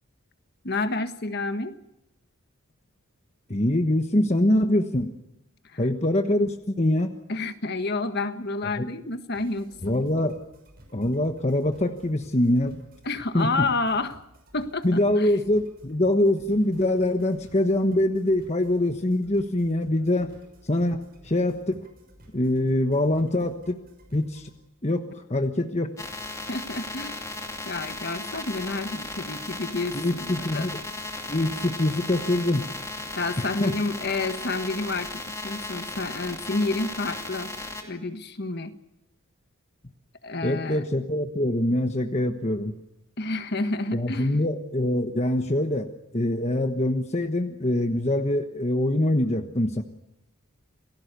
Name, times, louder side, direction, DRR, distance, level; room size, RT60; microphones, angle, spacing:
voice 1, 0.6-1.8 5.7-5.8 7.3-10.0 13.0-14.2 14.5-15.3 26.5-27.2 27.6-30.7 33.2-37.5 37.8-38.8 40.2-40.8 43.2-44.3, left 3 dB, 45° left, 9 dB, 1.5 m, -29 dB
voice 2, 3.5-5.1 5.8-7.1 8.8-8.9 9.8-10.4 10.9-12.8 13.3-13.7 14.8-20.3 20.7-21.8 22.3-23.8 24.1-24.5 24.8-25.9 29.9-30.8 31.3-32.7 33.4-33.7 40.4-42.7 43.9-49.8, left 1 dB, 30° left, 6 dB, 1.2 m, -24 dB
sound 1, 9.3-24.6, equal, 45° right, 6.1 m, -54 dB
sound 2, 26.0-37.8, left 2 dB, 15° left, 2.7 m, -36 dB
28.5 x 19.0 x 6.8 m, 0.86 s
head